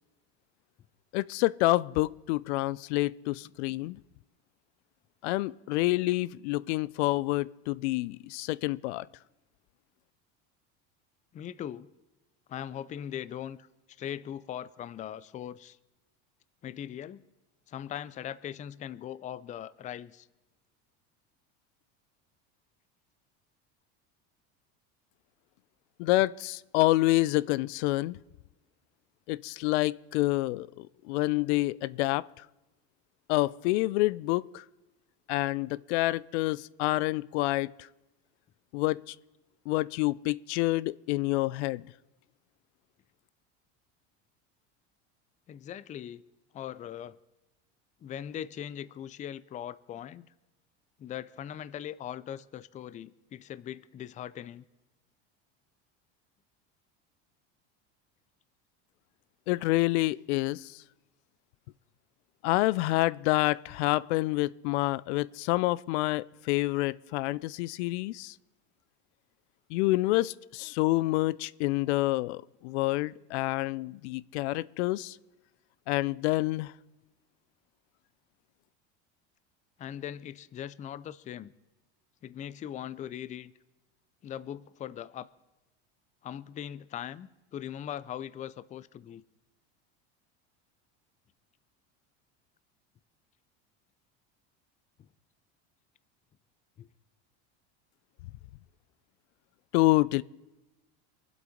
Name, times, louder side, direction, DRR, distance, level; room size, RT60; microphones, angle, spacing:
voice 1, 1.1-4.0 5.2-9.1 26.0-28.2 29.3-32.2 33.3-34.6 35.3-37.7 38.7-39.1 39.7-41.8 59.5-60.7 62.4-68.3 69.7-75.2 75.9-76.7 99.7-100.2, left 19 dB, 80° left, 0.5 m, -28 dB
voice 2, 11.3-11.9 12.5-13.7 14.0-15.8 16.6-17.2 17.7-20.3 45.5-46.2 46.5-47.2 48.0-50.3 51.0-54.6 79.8-81.5 82.2-83.5 84.2-85.3 86.2-89.2 95.0-95.1 96.8-96.9, left 10 dB, 25° left, 0.4 m, -40 dB
24.0 x 8.0 x 5.1 m
supercardioid pair, 120°, 33 cm